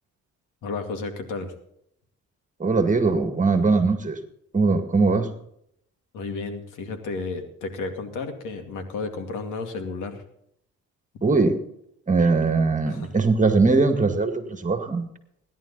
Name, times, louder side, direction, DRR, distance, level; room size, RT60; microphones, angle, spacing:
voice 1, 0.6-1.5 6.1-10.2 12.9-13.1, left 3 dB, 90° left, 6 dB, 2.4 m, -32 dB
voice 2, 2.6-4.2 4.5-5.3 11.2-11.6 12.1-15.1, right 4 dB, 25° right, 7 dB, 2.1 m, -21 dB
17.0 x 11.0 x 4.1 m, 0.73 s
cardioid pair, 90°, 30 cm